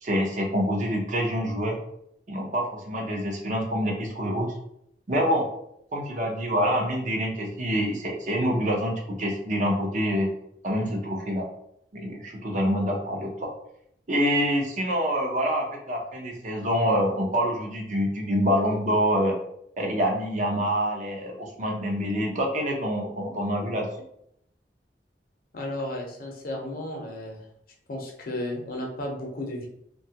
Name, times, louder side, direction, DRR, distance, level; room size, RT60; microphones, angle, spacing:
voice 1, 0.0-1.8 2.3-4.5 5.1-5.5 5.9-10.3 10.6-11.5 11.9-13.5 14.1-19.3 19.8-23.9, equal, 45° right, 0 dB, 0.6 m, -26 dB
voice 2, 25.5-27.4 27.9-29.7, left 1 dB, 55° left, 0 dB, 0.6 m, -33 dB
2.8 x 2.2 x 2.8 m, 0.74 s
head